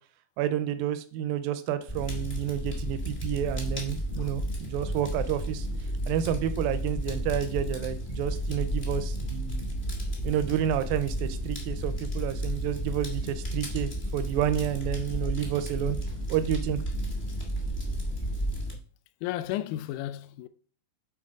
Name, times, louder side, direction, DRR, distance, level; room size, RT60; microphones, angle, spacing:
voice 1, 0.4-5.7 6.1-9.7 10.2-16.0 16.3-16.8, right 10 dB, 85° right, 2.3 m, -30 dB
Fire, 1.9-18.7, equal, 55° left, 0.5 m, -32 dB
voice 2, 19.2-20.5, left 13 dB, 85° left, 1.8 m, -33 dB
8.8 x 4.0 x 4.8 m
omnidirectional pair, 4.2 m